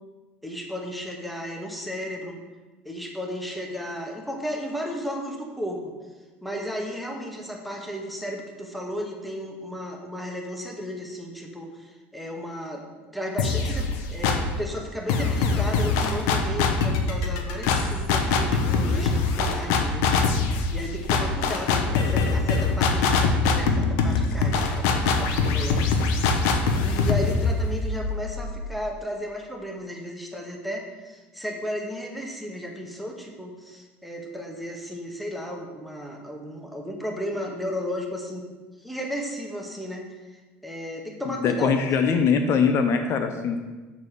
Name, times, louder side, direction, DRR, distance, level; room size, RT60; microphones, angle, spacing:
voice 1, 0.4-2.4 2.8-5.9 6.4-12.8 13.1-38.4 38.8-41.7 42.0-42.2, equal, ahead, 1 dB, 1.5 m, -34 dB
sound 1, 13.4-14.6 15.1-28.8, left 4 dB, 70° left, 0.9 m, -23 dB
voice 2, 41.3-43.6, left 6 dB, 50° left, 7 dB, 0.6 m, -22 dB
6.9 x 4.1 x 6.7 m, 1.3 s
hypercardioid pair, 85°, 6 cm